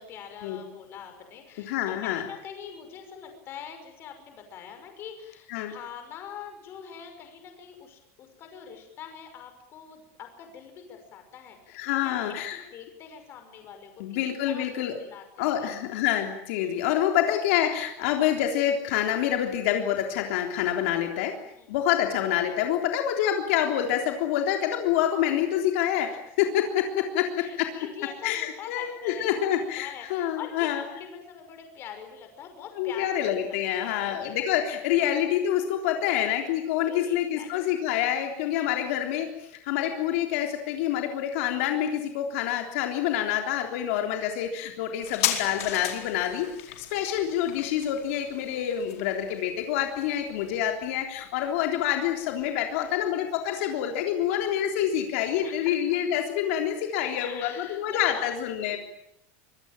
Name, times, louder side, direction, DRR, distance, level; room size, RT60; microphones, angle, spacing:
voice 1, 0.0-14.7 15.0-15.7 16.6-16.8 21.5-21.7 27.4-33.4 33.7-34.3 36.0-36.5 36.8-37.7 38.5-38.7 46.7-46.8 48.9-49.0 50.3-50.4 52.7-53.0 53.5-53.8 54.3-54.4 55.4-56.0 57.2-58.3 58.7-58.8, left 8 dB, 30° left, 6 dB, 5.9 m, -44 dB
voice 2, 1.6-2.3 5.5-5.7 11.7-12.6 14.0-15.0 15.4-21.4 21.7-27.7 28.2-30.8 32.8-58.8, left 10 dB, 65° left, 3 dB, 3.5 m, -27 dB
sound 1, 45.0-52.1 52.4-52.5, left 12 dB, 90° left, 4.8 m, -36 dB
25.5 x 22.0 x 9.0 m, 0.78 s
supercardioid pair, 175°, 8 cm